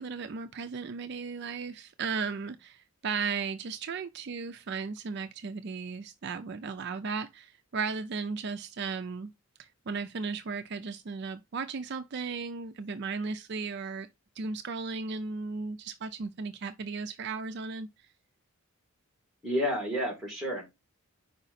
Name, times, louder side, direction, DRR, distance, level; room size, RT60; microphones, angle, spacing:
voice 1, 0.0-9.3 9.6-14.1 14.4-17.9, right 5 dB, 50° right, 0.4 m, -35 dB
voice 2, 19.4-20.6, equal, ahead, 2.3 m, -30 dB
4.9 x 4.9 x 4.0 m
head